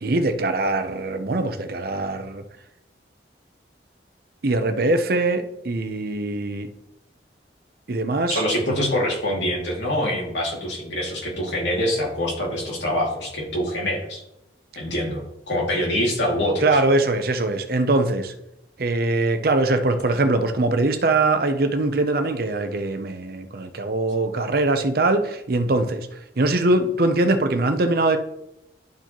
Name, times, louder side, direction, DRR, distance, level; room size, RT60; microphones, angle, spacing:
voice 1, 0.0-2.4 4.4-6.7 7.9-8.4 16.6-18.3 18.8-26.1 26.4-28.2, right 2 dB, 55° right, 9 dB, 0.6 m, -22 dB
voice 2, 8.3-14.2 14.8-15.2 15.5-16.8, left 1 dB, 85° left, -2 dB, 2.4 m, -25 dB
11.5 x 4.7 x 3.0 m, 0.87 s
head